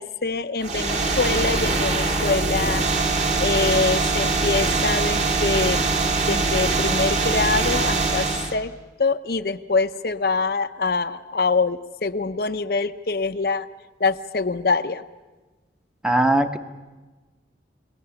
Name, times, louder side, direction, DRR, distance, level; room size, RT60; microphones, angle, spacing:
voice 1, 0.0-2.8 3.4-5.8 6.3-8.7 9.0-13.7 14.0-15.0, left 4 dB, 55° left, 9 dB, 0.7 m, -24 dB
sound 1, 0.6-8.6, right 3 dB, 40° right, 2.1 m, -22 dB
voice 2, 16.0-16.6, right 1 dB, 5° right, 7 dB, 0.9 m, -19 dB
30.0 x 19.5 x 7.0 m, 1.2 s
head